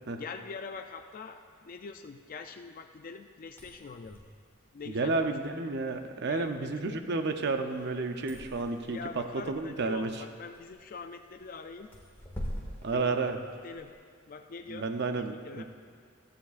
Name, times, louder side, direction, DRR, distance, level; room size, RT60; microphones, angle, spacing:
voice 1, 0.2-4.2 4.7-5.3 6.3-6.8 8.9-11.9 12.9-13.3 13.6-13.9 14.3-15.6, left 4 dB, 40° left, 5 dB, 0.4 m, -44 dB
sound 1, 3.4-13.9, equal, 10° left, 1.9 m, -46 dB
voice 2, 4.9-10.1 12.8-13.4 14.7-15.6, right 3 dB, 55° right, 6 dB, 0.7 m, -31 dB
16.5 x 13.0 x 2.5 m, 2.1 s
head